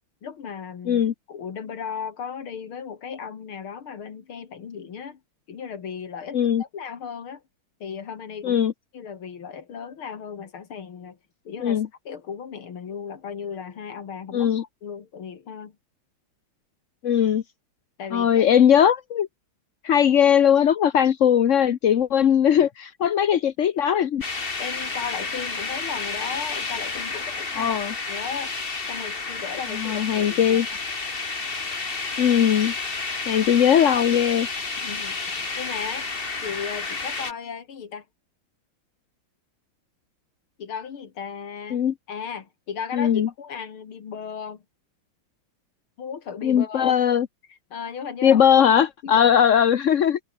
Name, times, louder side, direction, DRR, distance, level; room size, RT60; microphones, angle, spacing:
voice 1, 0.2-5.2 5.5-7.4 7.8-8.6 8.9-11.2 11.4-15.8 18.0-18.7 24.6-27.8 28.1-28.6 28.9-30.6 34.8-36.1 36.4-38.0 40.6-41.8 42.1-44.6 46.0-47.0 47.5-48.4 49.0-49.4, left 7 dB, 75° left, 2.9 m, -36 dB
voice 2, 6.3-6.6 8.4-8.7 11.6-11.9 14.3-14.6 17.0-17.4 18.1-19.3 19.8-24.2 27.6-27.9 29.7-30.7 32.2-32.7 33.3-34.5 41.7-41.9 42.9-43.3 46.4-47.3 48.2-50.2, left 9 dB, 55° left, 0.8 m, -19 dB
sound 1, 24.2-37.3, left 4 dB, 25° left, 2.0 m, -31 dB
omnidirectional pair, 2.4 m